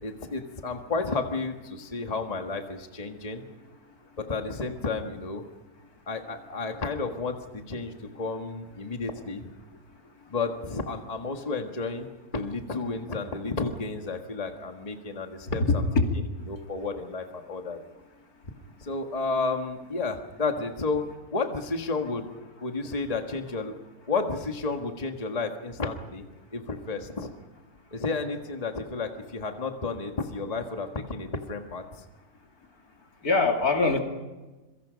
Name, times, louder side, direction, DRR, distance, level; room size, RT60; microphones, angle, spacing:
voice 1, 0.0-3.4 4.2-5.4 6.1-9.5 10.3-15.8 16.5-17.8 18.8-22.3 22.6-23.7 24.1-26.3 26.5-27.3 27.9-32.0, left 3 dB, 25° left, 4 dB, 1.7 m, -32 dB
voice 2, 15.5-16.1 33.2-34.0, left 3 dB, 70° left, 2 dB, 3.2 m, -23 dB
26.5 x 24.0 x 5.2 m, 1.2 s
omnidirectional pair, 1.6 m